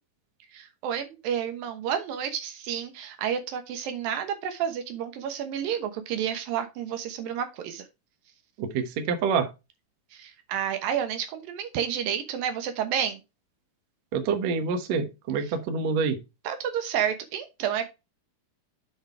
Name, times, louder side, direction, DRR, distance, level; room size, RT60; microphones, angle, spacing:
voice 1, 0.5-7.9 10.1-13.2 15.4-15.5 16.4-17.8, right 9 dB, 75° right, 8 dB, 2.8 m, -30 dB
voice 2, 8.6-9.5 14.1-16.2, right 5 dB, 60° right, 7 dB, 2.0 m, -27 dB
8.1 x 4.9 x 4.5 m, 0.25 s
omnidirectional pair, 4.2 m